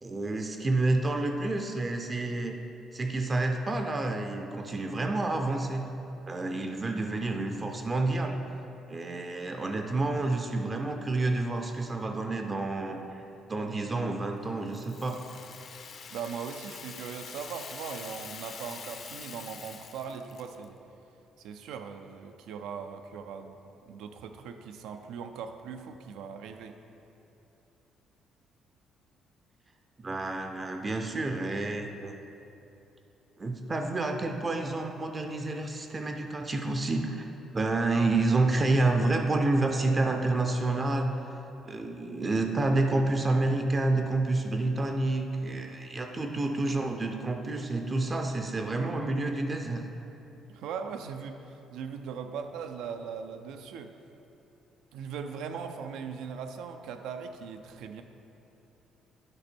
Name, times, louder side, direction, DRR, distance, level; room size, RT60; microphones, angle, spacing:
voice 1, 0.0-2.6 2.9-5.9 6.3-8.4 8.9-15.2 30.0-32.2 33.4-37.3 37.5-41.2 41.7-49.8, right 2 dB, 20° right, 4 dB, 0.4 m, -29 dB
Rattle (instrument), 14.7-20.7, left 6 dB, 40° left, 0.5 m, -45 dB
voice 2, 16.1-20.8 21.4-23.6 23.9-26.8 41.8-41.9 50.5-53.9 54.9-58.0, right 6 dB, 90° right, 6 dB, 0.5 m, -39 dB
9.7 x 5.2 x 4.4 m, 2.9 s
cardioid pair, 160°, 0 cm